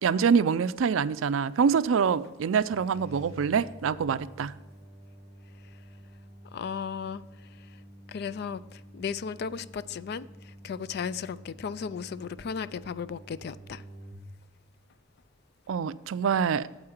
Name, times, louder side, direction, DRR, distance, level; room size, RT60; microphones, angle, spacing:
voice 1, 0.0-4.5 15.7-16.7, right 6 dB, 80° right, 0.4 m, -25 dB
sound 1, 2.7-14.1, right 1 dB, 30° left, 2.7 m, -49 dB
voice 2, 6.5-7.2 7.6-7.7 8.1-13.8, left 6 dB, 55° left, 0.3 m, -35 dB
8.5 x 7.9 x 4.4 m
head